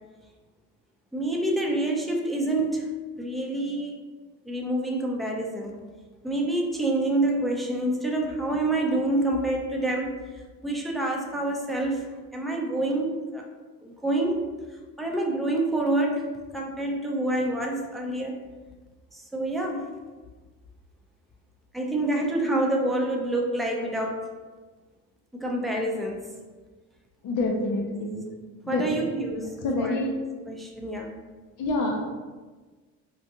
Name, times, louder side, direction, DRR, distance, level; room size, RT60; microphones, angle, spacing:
voice 1, 1.1-2.9 3.2-4.0 4.4-5.8 6.2-12.1 12.3-13.4 13.8-14.5 15.0-16.3 16.5-18.4 19.1-19.9 21.7-24.2 25.3-26.3 27.6-27.7 28.7-30.0 30.5-31.2, right 1 dB, ahead, 0 dB, 0.5 m, -27 dB
voice 2, 27.2-28.2 28.6-29.1 29.6-30.1 31.6-32.2, left 2 dB, 70° left, 0 dB, 0.6 m, -27 dB
3.8 x 2.4 x 2.7 m, 1.3 s
cardioid pair, 85°, 33 cm